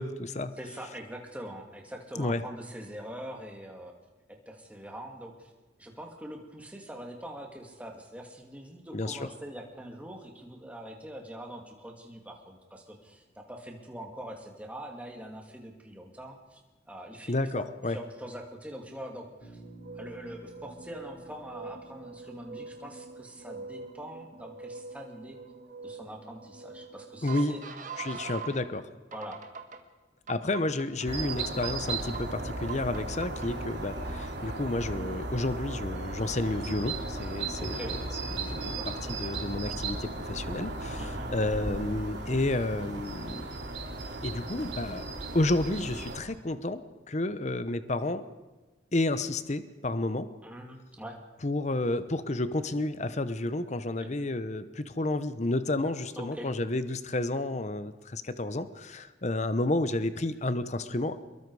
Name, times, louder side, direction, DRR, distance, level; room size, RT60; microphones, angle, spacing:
voice 1, 0.0-0.6 2.2-2.4 8.9-9.3 17.3-18.0 27.2-27.6 28.0-28.9 30.3-38.0 38.3-38.8 39.1-43.5 44.2-45.0 45.3-46.8 47.1-48.2 48.9-50.3 51.4-61.2, left 2 dB, 40° left, 12 dB, 0.8 m, -31 dB
voice 2, 0.6-3.9 4.5-5.5 5.8-16.6 16.9-19.6 20.0-25.4 25.8-27.6 28.1-28.3 29.1-29.4 37.6-38.0 38.4-38.9 41.0-41.3 50.4-51.2 54.0-54.1 56.2-56.5, right 1 dB, 10° right, 1 dB, 2.5 m, -43 dB
Bass guitar, 19.4-23.4, right 2 dB, 80° left, 5.5 m, -53 dB
sound 1, 19.6-28.6 29.1-29.8 30.3-31.1 31.6-32.2 32.7-33.5, right 4 dB, 45° right, 1.6 m, -43 dB
sound 2, 31.1-46.2, right 2 dB, 65° right, 3.4 m, -36 dB
24.5 x 22.0 x 4.9 m, 1.2 s
head